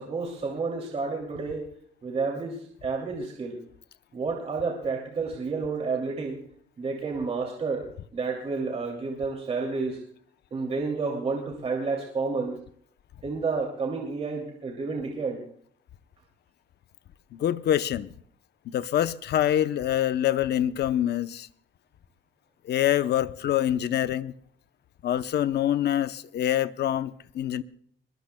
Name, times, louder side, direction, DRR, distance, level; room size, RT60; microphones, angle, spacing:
voice 1, 0.0-1.7 2.0-3.6 4.1-6.4 6.8-7.9 8.1-10.0 10.5-12.6 13.2-15.4, right 4 dB, 30° right, 2.7 m, -30 dB
voice 2, 17.3-18.1 18.7-21.5 22.6-24.3 25.0-27.6, left 11 dB, 60° left, 0.8 m, -25 dB
23.0 x 22.0 x 2.3 m
cardioid pair, 160°, 20 cm